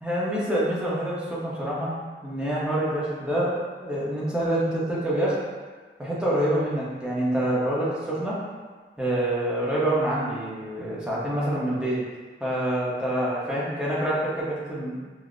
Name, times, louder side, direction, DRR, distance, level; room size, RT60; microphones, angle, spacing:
voice 1, 0.0-1.9 2.2-3.5 3.8-5.4 6.0-8.4 9.0-12.0 12.4-15.0, right 1 dB, 5° right, -8 dB, 0.8 m, -26 dB
6.0 x 2.1 x 2.5 m, 1.4 s
head